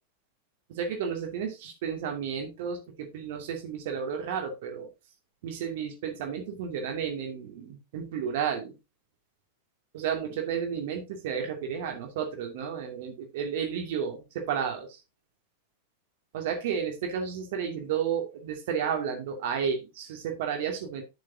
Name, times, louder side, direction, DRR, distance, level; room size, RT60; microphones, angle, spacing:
voice 1, 0.7-4.9 5.4-8.8 9.9-15.0 16.3-21.0, right 7 dB, 50° right, 3 dB, 2.5 m, -32 dB
11.0 x 6.5 x 2.8 m, 0.25 s
figure-of-eight pair, 90°, 0 cm